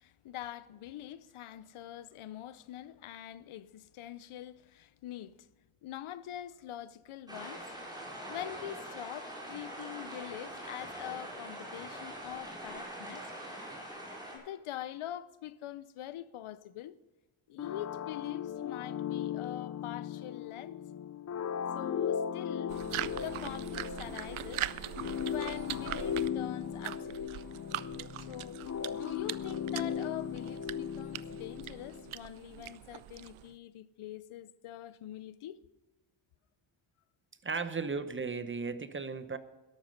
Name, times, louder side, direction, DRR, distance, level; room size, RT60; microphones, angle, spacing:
voice 1, 0.0-5.4 5.8-7.6 8.3-13.3 14.3-17.0 17.5-20.8 21.7-22.8 23.1-24.7 25.2-27.5 28.3-35.6, left 12 dB, 80° left, 0.8 m, -44 dB
sound 1, 7.3-14.4, right 1 dB, 10° right, 4.5 m, -43 dB
sound 2, 17.6-32.1, left 8 dB, 35° left, 0.5 m, -37 dB
sound 3, 22.7-33.5, right 13 dB, 80° right, 0.7 m, -42 dB
voice 2, 37.4-39.4, right 4 dB, 25° right, 0.9 m, -35 dB
13.0 x 12.0 x 5.3 m
wide cardioid pair, 140°, 49 cm